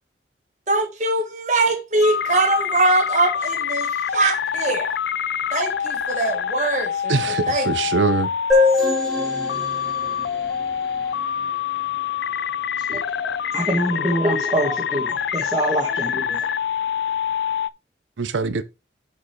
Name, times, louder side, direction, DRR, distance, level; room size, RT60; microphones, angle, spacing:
voice 1, 0.7-5.0 5.5-7.1 7.5-7.7, right 2 dB, 40° right, 1.4 m, -22 dB
sound 1, 2.0-17.7, left 8 dB, 65° left, 0.4 m, -26 dB
voice 2, 7.1-8.3 18.2-18.6, right 4 dB, 90° right, 0.6 m, -22 dB
sound 2, 8.5-12.0, left 3 dB, ahead, 2.8 m, -24 dB
voice 3, 12.9-16.5, right 1 dB, 20° right, 1.5 m, -25 dB
6.2 x 5.4 x 4.5 m
head